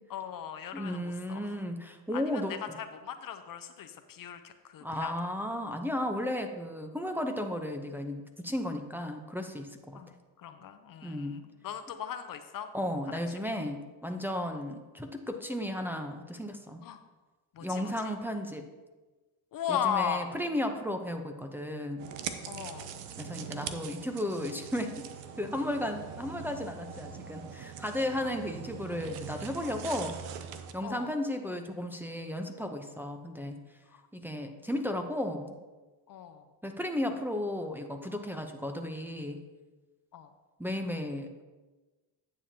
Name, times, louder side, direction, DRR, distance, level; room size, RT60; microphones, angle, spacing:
voice 1, 0.1-1.5 2.1-5.1 9.9-10.1 10.4-12.7 13.1-13.5 14.5-14.6 16.8-17.0 17.5-18.1 19.5-20.3 22.5-22.9 28.1-28.3 30.8-31.1 34.5-34.6 36.1-36.5 40.1-40.3, left 8 dB, 50° left, 8 dB, 0.6 m, -37 dB
voice 2, 0.7-2.7 4.8-10.0 11.0-11.4 12.7-16.8 17.6-18.7 19.7-22.0 23.2-24.9 25.4-30.2 30.7-33.6 34.1-35.5 36.6-39.4 40.6-41.4, left 1 dB, 5° right, 3 dB, 0.7 m, -34 dB
sound 1, 22.0-30.7, right 8 dB, 85° right, 0.7 m, -42 dB
9.8 x 7.2 x 2.8 m, 1.2 s
supercardioid pair, 75°, 45 cm